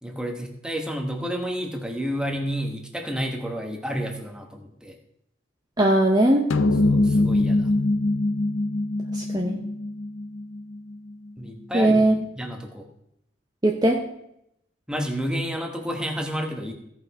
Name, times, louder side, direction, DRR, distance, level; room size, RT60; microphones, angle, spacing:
voice 1, 0.0-5.0 6.8-7.7 11.4-12.0 12.4-12.9 14.9-16.7, equal, 5° right, 3 dB, 1.1 m, -30 dB
voice 2, 5.8-6.5 9.1-9.6 11.7-12.2 13.6-14.0, right 1 dB, 20° right, 0 dB, 0.8 m, -19 dB
sound 1, 6.5-11.1, left 2 dB, 80° left, 0.6 m, -23 dB
16.0 x 5.7 x 4.8 m, 0.78 s
head